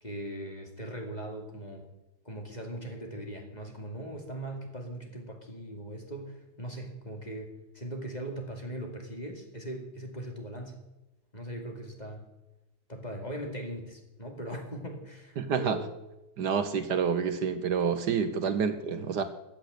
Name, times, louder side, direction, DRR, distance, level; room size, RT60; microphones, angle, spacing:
voice 1, 0.0-1.9 2.2-10.8 11.3-12.3 12.9-15.9 18.4-18.5, right 1 dB, 20° left, 2 dB, 2.5 m, -40 dB
voice 2, 15.4-15.8 16.4-19.2, right 6 dB, 65° right, 9 dB, 1.5 m, -28 dB
15.0 x 9.1 x 8.0 m, 0.97 s
omnidirectional pair, 2.0 m